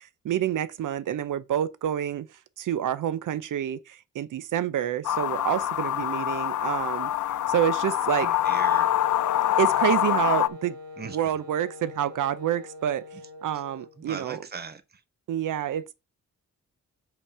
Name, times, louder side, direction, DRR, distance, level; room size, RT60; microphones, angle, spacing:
voice 1, 0.0-7.1 7.5-8.3 9.6-10.8 11.0-13.0 13.4-14.5 15.3-15.9, right 10 dB, 90° right, 0.6 m, -28 dB
sound 1, 5.0-10.5, left 12 dB, 70° left, 0.5 m, -25 dB
voice 2, 8.2-8.9 11.0-11.2 14.0-14.8, right 5 dB, 35° right, 0.9 m, -38 dB
Wind instrument woodwind instrument, 8.4-14.0, left 3 dB, 55° right, 1.4 m, -43 dB
5.6 x 5.1 x 5.5 m
wide cardioid pair, 140°, 30 cm